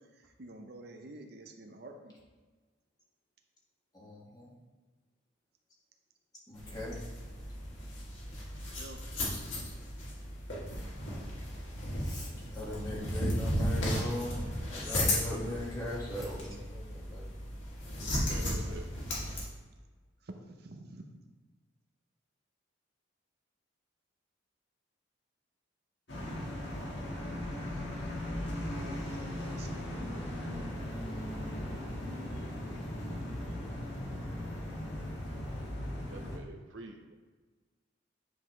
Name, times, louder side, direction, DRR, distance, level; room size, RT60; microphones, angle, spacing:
voice 1, 0.0-2.2 8.5-9.0 18.5-19.5 20.2-21.2 27.6-30.2, right 2 dB, 55° right, 4 dB, 0.7 m, -51 dB
voice 2, 3.9-4.5 6.5-7.0 12.0-17.3, left 1 dB, 20° left, -5 dB, 1.7 m, -39 dB
sound 1, 6.5-19.4, equal, 85° left, 2.4 m, -35 dB
voice 3, 18.3-18.8 36.1-37.1, right 1 dB, 85° right, 4 dB, 0.8 m, -47 dB
sound 2, 26.1-36.4, left 1 dB, 65° left, 1.7 m, -38 dB
9.8 x 5.4 x 3.2 m, 1.4 s
head